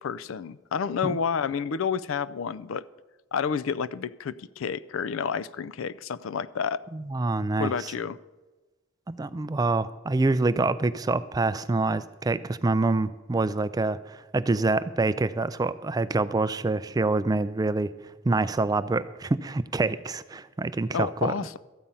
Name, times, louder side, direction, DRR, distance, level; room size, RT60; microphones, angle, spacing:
voice 1, 0.0-2.8 3.3-6.8 7.6-8.2 20.9-21.6, left 6 dB, 65° left, 17 dB, 0.4 m, -30 dB
voice 2, 6.9-7.9 9.1-17.9 18.2-21.3, right 3 dB, 20° right, 15 dB, 0.3 m, -26 dB
13.5 x 8.7 x 5.5 m, 1.2 s
head